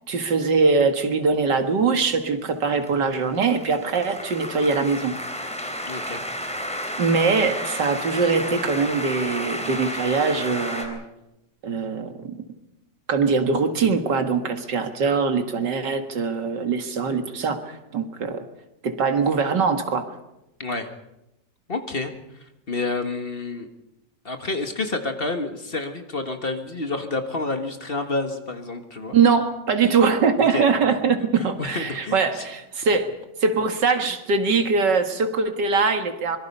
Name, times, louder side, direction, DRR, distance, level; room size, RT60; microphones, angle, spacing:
voice 1, 0.1-5.2 7.0-11.0 11.6-12.4 13.1-18.4 18.8-20.1 29.1-33.1 33.4-36.4, right 4 dB, 80° right, 6 dB, 2.4 m, -22 dB
sound 1, 1.6-10.9, equal, 5° left, 3.6 m, -32 dB
voice 2, 5.8-6.2 20.6-20.9 21.7-23.7 24.3-29.2 30.5-30.7 31.4-32.5, left 3 dB, 35° left, 6 dB, 1.6 m, -29 dB
24.5 x 23.0 x 5.5 m, 0.90 s
omnidirectional pair, 1.8 m